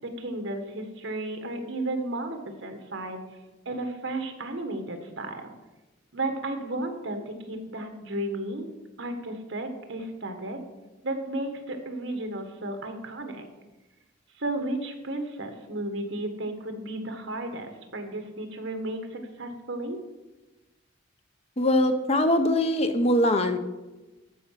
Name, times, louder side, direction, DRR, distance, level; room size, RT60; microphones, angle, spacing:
voice 1, 0.0-3.2 3.6-5.5 6.1-8.6 9.0-10.6 11.0-13.5 14.4-20.0, right 1 dB, 70° right, 6 dB, 1.5 m, -33 dB
voice 2, 21.6-23.6, left 1 dB, 30° left, 8 dB, 0.7 m, -22 dB
13.5 x 5.7 x 5.8 m, 1.1 s
head